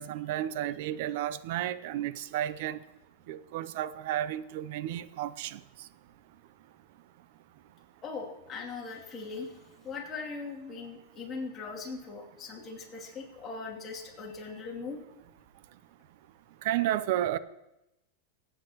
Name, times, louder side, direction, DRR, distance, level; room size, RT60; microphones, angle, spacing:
voice 1, 0.0-2.8 3.3-5.6 16.6-17.4, right 12 dB, 60° right, 0.5 m, -32 dB
voice 2, 8.0-15.0, left 4 dB, 25° left, 2.6 m, -40 dB
25.5 x 8.8 x 3.0 m
supercardioid pair, 140°, 0 cm